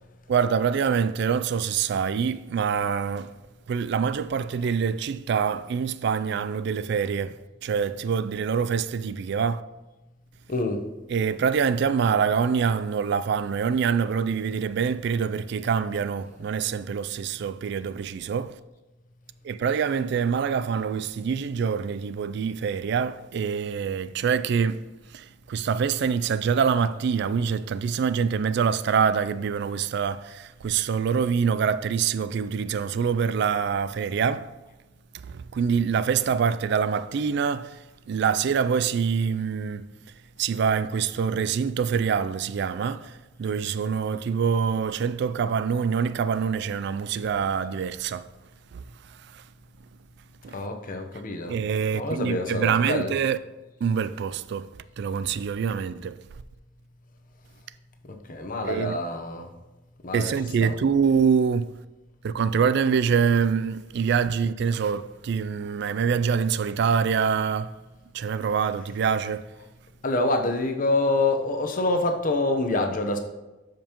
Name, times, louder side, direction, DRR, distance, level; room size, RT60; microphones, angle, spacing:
voice 1, 0.3-3.3 3.7-9.6 11.1-18.6 19.4-24.9 25.1-34.5 35.2-39.9 40.4-48.3 48.7-48.8 49.1-49.4 50.4-50.6 51.5-53.4 53.8-54.7 55.0-56.2 58.6-59.0 60.1-61.7 62.2-67.7 68.1-69.5, right 6 dB, 65° right, 0.3 m, -25 dB
voice 2, 10.5-10.8 50.5-51.5 51.9-53.1 58.3-59.5 60.0-60.8 70.0-73.2, left 2 dB, 45° left, 0.9 m, -26 dB
12.5 x 5.2 x 3.0 m
head